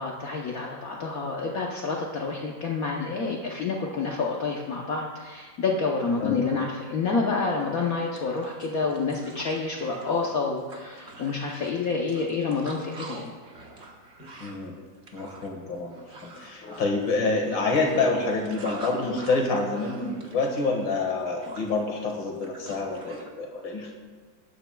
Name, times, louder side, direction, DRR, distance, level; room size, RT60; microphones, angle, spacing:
voice 1, 0.0-13.3, left 4 dB, 55° left, -1 dB, 1.1 m, -28 dB
sound 1, 7.6-7.7 8.0-23.3, right 2 dB, 40° right, 1.3 m, -45 dB
voice 2, 14.4-14.7 15.1-15.9 16.2-23.9, left 3 dB, 80° left, 1 dB, 2.3 m, -27 dB
19.0 x 9.0 x 2.3 m, 1.5 s
omnidirectional pair, 2.1 m